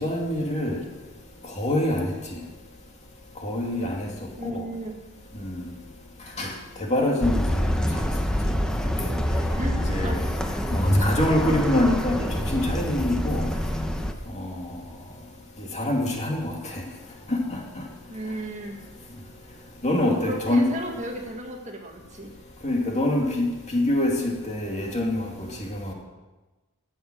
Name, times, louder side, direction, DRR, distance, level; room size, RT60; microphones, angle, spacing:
voice 1, 0.0-0.7 1.6-2.0 3.4-3.9 6.4-6.5 6.9-7.3 9.9-10.1 10.7-12.1 12.5-13.4 15.9-16.4 19.8-20.1 20.5-20.6 22.6-23.5 23.7-24.1 24.5-25.1, left 1 dB, 30° left, 0 dB, 2.5 m, -23 dB
voice 2, 4.4-5.0 9.6-10.2 10.9-11.1 18.1-18.8 20.0-22.3, right 1 dB, 35° right, 2 dB, 1.7 m, -34 dB
sound 1, 7.2-14.1, equal, 5° left, 0.9 m, -26 dB
14.5 x 7.8 x 7.7 m, 1.2 s
head